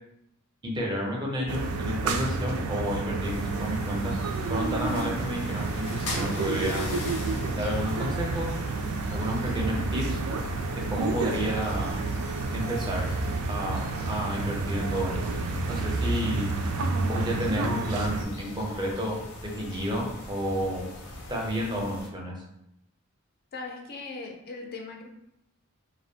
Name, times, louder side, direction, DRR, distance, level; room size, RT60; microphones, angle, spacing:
voice 1, 0.6-4.1 4.5-7.0 7.5-8.5 9.1-10.2 10.9-11.9 12.5-13.0 13.5-15.1 15.7-16.5 17.1-20.9 21.3-22.3, equal, 20° right, -1 dB, 0.5 m, -31 dB
sound 1, 1.5-18.2, right 3 dB, 90° right, 0.3 m, -30 dB
sound 2, 3.2-22.1, left 2 dB, 90° left, 0.6 m, -42 dB
voice 2, 23.5-25.1, left 3 dB, 45° left, 1 dB, 0.4 m, -39 dB
2.5 x 2.1 x 2.7 m, 0.80 s
head